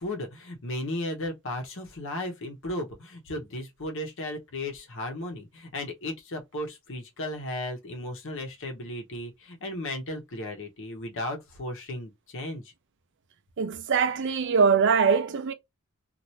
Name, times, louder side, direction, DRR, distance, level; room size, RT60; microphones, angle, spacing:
voice 1, 0.0-12.6, left 1 dB, 60° left, 0.9 m, -35 dB
voice 2, 13.6-15.5, right 5 dB, 55° right, 0.5 m, -22 dB
2.7 x 2.5 x 3.1 m
head